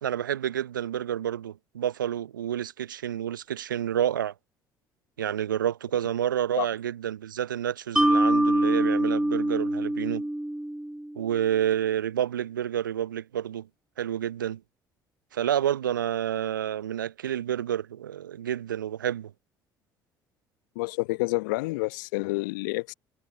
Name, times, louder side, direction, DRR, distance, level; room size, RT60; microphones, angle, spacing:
voice 1, 0.0-4.3 5.2-10.3 11.2-13.7 14.0-14.6 15.3-19.3, right 10 dB, 85° right, 0.7 m, -29 dB
Mallet percussion, 8.0-11.2, right 1 dB, 5° right, 3.2 m, -24 dB
voice 2, 20.7-22.9, left 24 dB, 70° left, 0.9 m, -29 dB
figure-of-eight pair, 55°, 10 cm